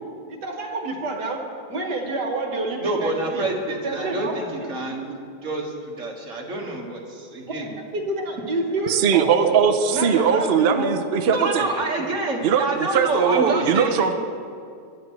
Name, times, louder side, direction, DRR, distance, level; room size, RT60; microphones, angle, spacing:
voice 1, 0.3-1.4 1.7-3.4 3.8-4.3 7.9-10.9 11.6-11.7 13.9-14.0, right 2 dB, 65° right, 2 dB, 2.0 m, -27 dB
voice 2, 2.8-7.8 11.3-14.1, right 2 dB, 45° right, -2 dB, 2.0 m, -27 dB
voice 3, 8.9-11.7 12.4-14.2, right 7 dB, 80° right, 7 dB, 0.5 m, -20 dB
21.0 x 10.5 x 3.2 m, 2.4 s
omnidirectional pair, 1.9 m